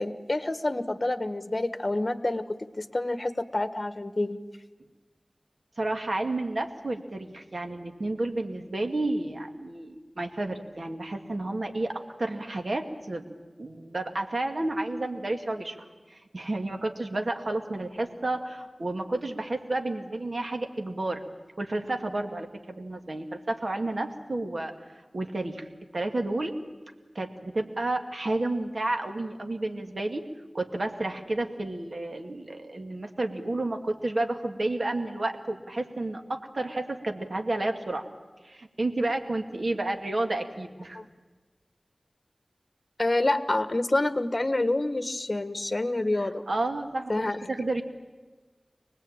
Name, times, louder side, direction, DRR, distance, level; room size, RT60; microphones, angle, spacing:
voice 1, 0.0-2.4 2.8-4.4 40.9-41.0 43.0-46.4 47.1-47.4, left 2 dB, 40° left, 10 dB, 1.5 m, -27 dB
voice 2, 5.8-21.2 21.6-24.7 25.1-25.7 25.9-26.6 27.1-30.2 30.5-38.0 38.4-41.0 46.2-47.1 47.5-47.8, right 2 dB, 65° right, 4 dB, 2.3 m, -31 dB
25.0 x 20.0 x 8.9 m, 1.3 s
wide cardioid pair, 55°, 0 cm